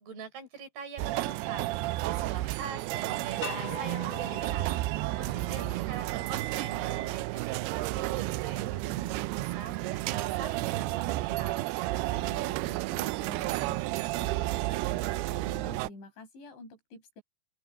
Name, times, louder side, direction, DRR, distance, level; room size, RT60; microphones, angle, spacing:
voice 1, 0.0-1.7 2.1-4.8 5.2-11.6, right 6 dB, 60° right, 6.1 m, -43 dB
sound 1, 1.0-15.9, right 19 dB, 85° right, 2.3 m, -32 dB
sound 2, 3.4-6.3, left 5 dB, 30° left, 4.6 m, -43 dB
voice 2, 5.3-5.9 12.1-17.2, left 2 dB, 80° left, 10.0 m, -48 dB
open air
omnidirectional pair, 5.2 m